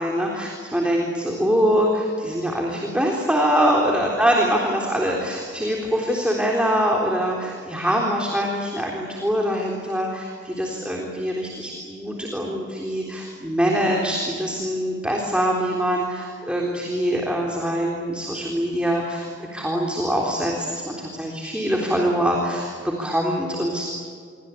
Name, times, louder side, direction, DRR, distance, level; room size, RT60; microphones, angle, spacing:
voice 1, 0.0-23.8, equal, 5° right, -1 dB, 3.8 m, -24 dB
28.5 x 24.0 x 8.5 m, 2.1 s
head